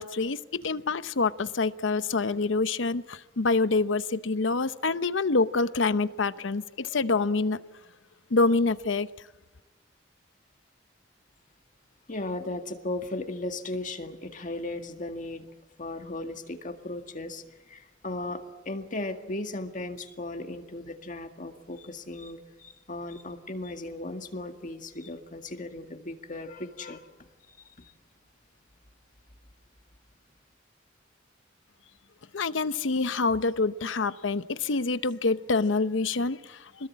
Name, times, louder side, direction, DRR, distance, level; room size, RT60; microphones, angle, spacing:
voice 1, 0.0-7.6 8.3-9.1 32.3-36.9, left 3 dB, 80° left, 14 dB, 0.8 m, -26 dB
voice 2, 12.1-15.5 15.8-27.1 27.5-27.9, left 2 dB, 45° left, 6 dB, 1.9 m, -36 dB
26.5 x 21.0 x 8.6 m, 1.1 s
head